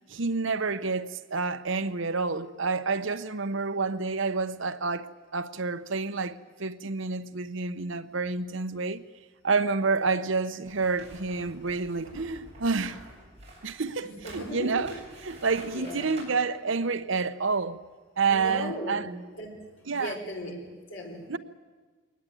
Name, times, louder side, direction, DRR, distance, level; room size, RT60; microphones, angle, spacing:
voice 1, 0.1-9.0 9.4-13.0 13.6-14.9 15.3-17.8 18.2-19.1 19.9-20.2 21.3-21.4, right 4 dB, 65° right, 0.9 m, -29 dB
sound 1, 10.6-16.2, right 2 dB, 30° right, 7.9 m, -48 dB
voice 2, 14.0-14.9 15.7-16.1 18.3-19.6 20.0-21.3, equal, 70° left, 4.8 m, -37 dB
22.5 x 19.0 x 9.2 m
head